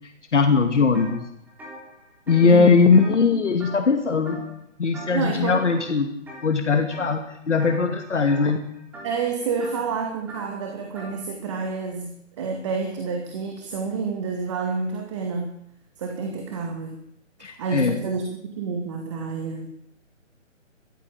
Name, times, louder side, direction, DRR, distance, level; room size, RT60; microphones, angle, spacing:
voice 1, 0.3-1.2 2.3-4.4 4.8-6.1 6.4-8.6 17.4-17.9, left 5 dB, 65° left, 5 dB, 2.7 m, -20 dB
sound 1, 0.9-1.1 1.5-4.0 4.3-4.6 4.9-5.3 5.6-6.4 6.9-7.2 7.6-11.2, right 1 dB, 5° right, 3.4 m, -42 dB
voice 2, 2.4-2.8 5.1-5.6 9.0-15.5 16.0-17.0 17.5-19.7, right 5 dB, 25° right, 3 dB, 2.2 m, -29 dB
21.0 x 14.5 x 8.8 m, 0.76 s
hypercardioid pair, 165°, 39 cm